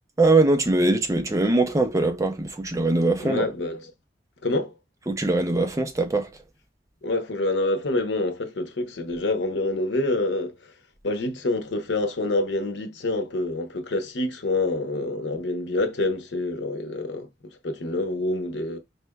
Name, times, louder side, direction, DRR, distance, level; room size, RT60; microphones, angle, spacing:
voice 1, 0.2-3.5 5.1-6.3, right 2 dB, 20° right, 0.4 m, -22 dB
voice 2, 3.2-3.9 4.4-4.7 7.0-10.7 11.0-18.8, left 2 dB, 85° left, 0.8 m, -27 dB
4.2 x 3.3 x 2.2 m
head